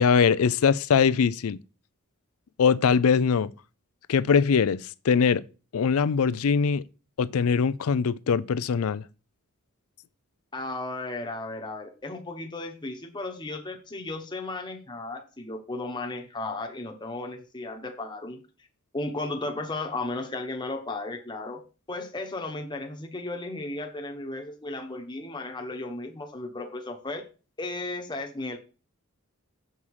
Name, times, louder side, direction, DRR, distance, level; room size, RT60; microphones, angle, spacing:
voice 1, 0.0-1.6 2.6-3.5 4.1-5.4 5.7-6.8 7.2-9.0, left 6 dB, 80° left, 0.4 m, -22 dB
voice 2, 10.5-18.4 18.9-21.6 21.9-27.2 27.6-28.6, left 2 dB, 20° left, 1.1 m, -35 dB
7.2 x 5.4 x 4.8 m
head